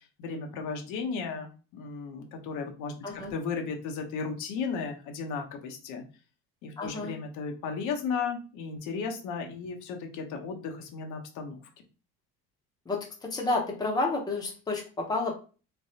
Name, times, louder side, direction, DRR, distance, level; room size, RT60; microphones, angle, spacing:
voice 1, 0.2-6.0 6.6-11.6, left 5 dB, 70° left, 3 dB, 0.8 m, -35 dB
voice 2, 6.8-7.1 12.9-15.3, left 2 dB, 10° left, -1 dB, 0.7 m, -30 dB
3.3 x 2.2 x 2.7 m, 0.35 s
cardioid pair, 135°, 32 cm